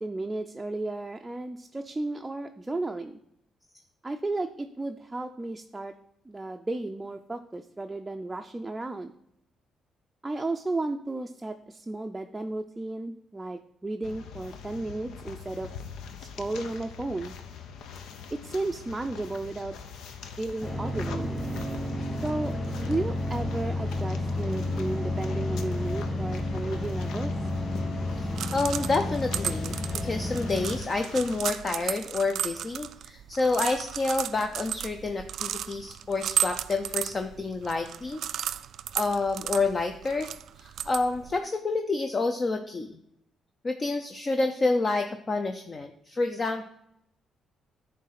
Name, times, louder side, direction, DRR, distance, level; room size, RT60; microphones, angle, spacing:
voice 1, 0.0-3.2 4.0-5.9 6.3-9.1 10.2-15.7 16.2-17.4 18.3-19.8 20.4-21.5 22.2-22.5 22.8-27.3, right 2 dB, 15° right, 4 dB, 0.5 m, -33 dB
sound 1, 14.0-31.4, left 6 dB, 80° left, 0.7 m, -44 dB
sound 2, 20.6-30.8, left 1 dB, 15° left, 2.0 m, -31 dB
sound 3, 28.1-41.4, right 10 dB, 70° right, 0.3 m, -35 dB
voice 2, 28.2-38.2 38.9-40.3 40.6-43.0 43.6-46.6, left 3 dB, 35° left, 6 dB, 0.6 m, -28 dB
9.1 x 3.3 x 5.8 m, 0.77 s
cardioid pair, 90°, 0 cm